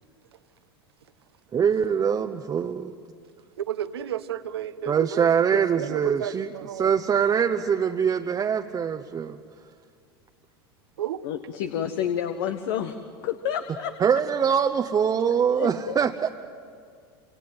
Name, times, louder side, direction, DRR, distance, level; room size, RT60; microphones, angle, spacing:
voice 1, 1.5-2.9 4.9-6.5 6.8-9.4 14.0-16.3, right 7 dB, 30° right, 4 dB, 1.0 m, -23 dB
voice 2, 3.6-7.0 11.0-11.2, right 10 dB, 85° right, 11 dB, 1.2 m, -32 dB
voice 3, 11.2-12.9 13.2-13.9 15.5-16.0, left 9 dB, 70° left, 8 dB, 1.4 m, -29 dB
28.0 x 26.5 x 7.8 m, 2.2 s
hypercardioid pair, 100°, 13 cm